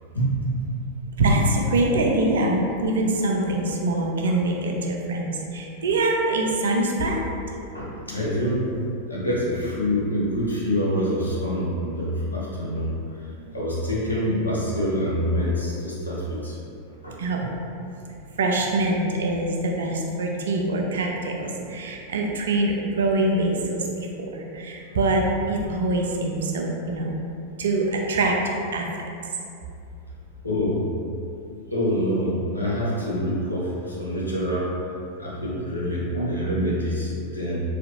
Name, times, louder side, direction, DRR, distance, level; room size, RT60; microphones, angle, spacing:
voice 1, 0.1-0.7 7.7-8.7 9.1-16.6 17.0-17.2 30.4-30.9 31.5-34.7 35.2-37.6, equal, 85° left, -6 dB, 0.7 m, -26 dB
voice 2, 1.2-7.2 17.2-17.5 18.4-27.1 27.6-28.4 28.7-29.0, right 2 dB, 65° right, 0 dB, 0.4 m, -24 dB
3.3 x 2.8 x 2.7 m, 2.6 s
figure-of-eight pair, 90°, 0 cm